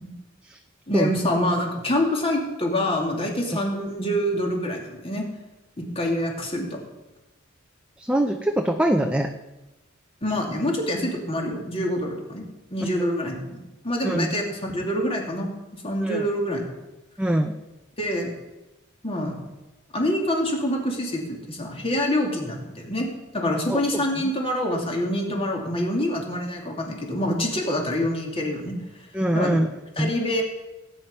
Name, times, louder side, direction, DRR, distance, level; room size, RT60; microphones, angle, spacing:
voice 1, 0.9-5.2 5.8-6.8 10.2-12.4 12.7-14.5 14.7-16.6 18.0-18.3 19.0-19.4 19.9-23.1 23.3-28.8 29.3-29.6 30.0-30.4, left 1 dB, 30° left, 0 dB, 2.7 m, -26 dB
voice 2, 8.0-9.3 14.0-14.3 16.0-16.3 17.2-17.5 23.7-24.0 29.1-29.7 30.0-30.1, right 1 dB, 5° right, 4 dB, 0.7 m, -23 dB
17.5 x 9.4 x 5.5 m, 1.0 s
head